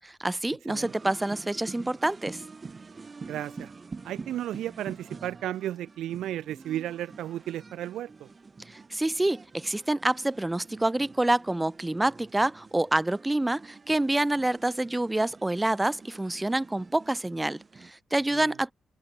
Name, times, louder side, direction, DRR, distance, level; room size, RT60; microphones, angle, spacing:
voice 1, 0.0-2.4 8.7-18.7, right 1 dB, 10° right, 0.6 m, -27 dB
sound 1, 0.7-17.9, right 4 dB, 30° right, 3.8 m, -47 dB
voice 2, 3.3-3.7 4.0-8.3 18.3-18.5, right 12 dB, 90° right, 0.7 m, -34 dB
open air
cardioid pair, 120°, 0 cm